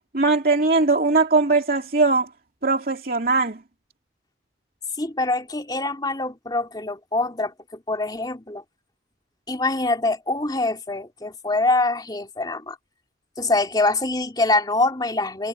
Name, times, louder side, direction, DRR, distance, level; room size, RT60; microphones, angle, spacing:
voice 1, 0.0-2.3 2.6-3.6, right 3 dB, 50° right, 2.7 m, -20 dB
voice 2, 5.0-8.6 9.5-12.8 13.4-15.5, left 2 dB, 20° left, 3.2 m, -24 dB
head